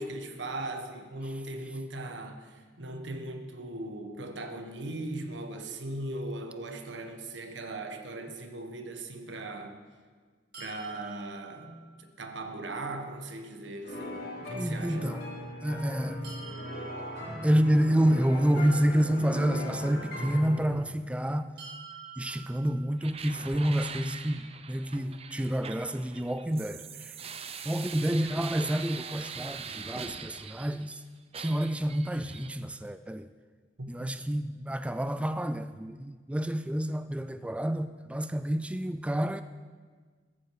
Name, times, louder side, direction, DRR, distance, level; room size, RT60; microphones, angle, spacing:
voice 1, 0.0-9.8 10.6-15.0 33.8-34.2, right 2 dB, 80° right, 1.4 m, -39 dB
sound 1, 10.5-12.5 16.2-18.3 21.6-23.6, right 6 dB, 65° right, 3.8 m, -48 dB
sound 2, 13.8-20.7, left 1 dB, 60° left, 4.4 m, -38 dB
voice 2, 14.6-15.3 15.6-16.4 17.4-21.5 22.2-31.0 31.4-33.3 33.9-39.4, equal, 5° right, 0.3 m, -29 dB
sound 3, 23.0-31.0 31.3-32.5, right 6 dB, 35° right, 0.7 m, -42 dB
16.0 x 14.5 x 4.9 m
head